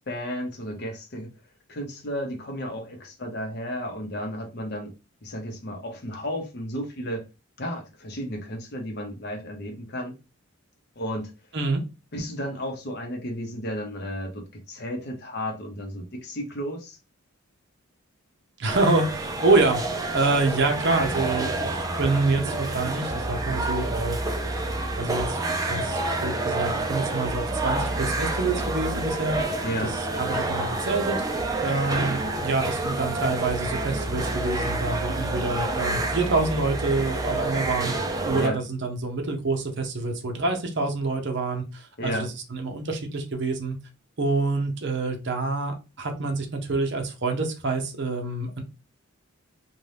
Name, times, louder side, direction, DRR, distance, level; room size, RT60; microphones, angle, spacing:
voice 1, 0.1-1.3 1.7-4.9 5.2-7.3 7.6-10.2 11.0-11.3 12.1-17.0 29.6-30.0 38.4-38.6 42.0-42.3, equal, 50° left, 0.7 m, -33 dB
voice 2, 18.6-19.8 20.1-24.2 25.0-29.9 30.2-31.2 31.6-37.9 38.3-43.8 44.2-48.6, right 3 dB, 55° right, 0.7 m, -26 dB
sound 1, 18.7-38.5, right 2 dB, 15° right, 0.4 m, -28 dB
2.6 x 2.2 x 3.2 m
head